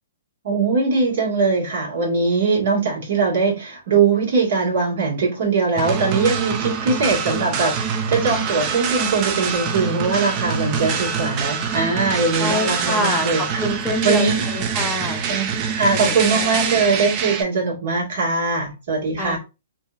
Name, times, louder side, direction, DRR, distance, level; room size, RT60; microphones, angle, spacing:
voice 1, 0.4-13.6 14.0-14.4 15.3-19.4, right 4 dB, 60° right, 2.0 m, -21 dB
sound 1, 5.8-17.4, right 6 dB, 35° right, 0.5 m, -25 dB
voice 2, 12.4-15.2 15.9-16.6 19.2-19.4, left 1 dB, 10° left, 0.6 m, -26 dB
3.6 x 2.8 x 2.6 m
hypercardioid pair, 145°, 0 cm